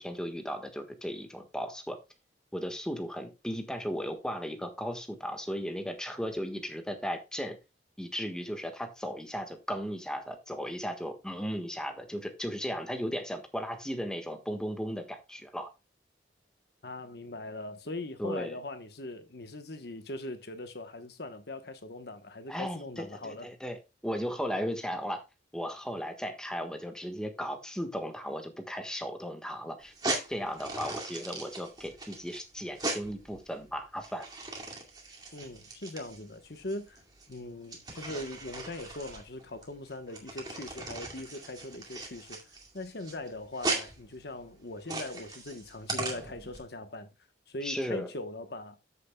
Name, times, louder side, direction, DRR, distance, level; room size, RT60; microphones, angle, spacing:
voice 1, 0.0-2.0 2.5-7.6 8.0-15.7 18.2-18.6 22.5-23.8 24.0-25.2 25.5-29.9 30.3-34.3 47.6-48.1, equal, 5° left, 1.4 m, -36 dB
voice 2, 16.8-23.5 35.3-37.0 37.3-42.4 42.7-47.1 47.5-48.8, left 2 dB, 60° left, 1.1 m, -40 dB
sound 1, 29.8-46.6, right 2 dB, 25° right, 2.3 m, -39 dB
14.0 x 6.9 x 2.3 m
head